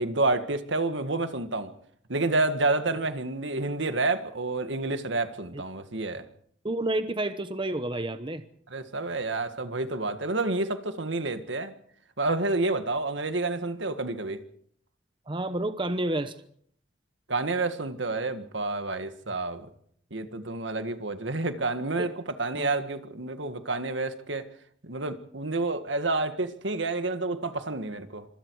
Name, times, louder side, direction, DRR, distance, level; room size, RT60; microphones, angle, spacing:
voice 1, 0.0-1.7 2.1-6.2 8.7-11.7 12.2-14.4 17.3-19.7 20.1-24.4 24.8-28.3, right 2 dB, 75° right, 9 dB, 1.8 m, -29 dB
voice 2, 6.6-8.4 15.3-16.3 22.0-22.1 22.5-22.7, right 1 dB, 25° right, 10 dB, 1.0 m, -29 dB
26.0 x 24.5 x 4.8 m, 0.64 s
head